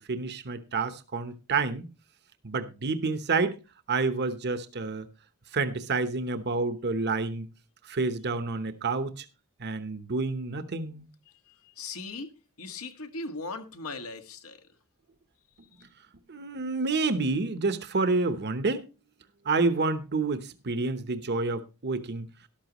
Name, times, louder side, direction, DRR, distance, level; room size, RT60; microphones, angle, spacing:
voice 1, 0.1-1.9 2.4-3.6 3.9-5.1 5.5-7.5 7.9-9.2 9.6-11.1 16.3-18.9 19.4-22.3, right 3 dB, 50° right, 1.0 m, -28 dB
voice 2, 11.8-12.3 12.6-14.6, left 3 dB, 75° left, 1.7 m, -38 dB
13.0 x 12.0 x 3.0 m
head